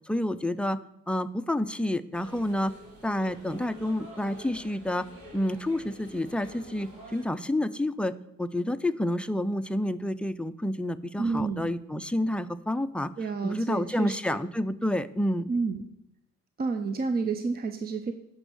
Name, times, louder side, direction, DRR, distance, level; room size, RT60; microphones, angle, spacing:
voice 1, 0.1-0.8 1.1-2.7 3.0-5.1 5.3-8.1 8.4-13.1 13.4-15.5, left 1 dB, 5° left, 10 dB, 0.5 m, -29 dB
sound 1, 2.1-7.2, equal, 70° right, 3.9 m, -48 dB
voice 2, 11.2-11.7 13.2-14.4 15.5-15.8 16.6-18.1, right 4 dB, 30° right, 8 dB, 0.7 m, -30 dB
8.9 x 5.5 x 8.0 m, 0.83 s
cardioid pair, 90°, 30 cm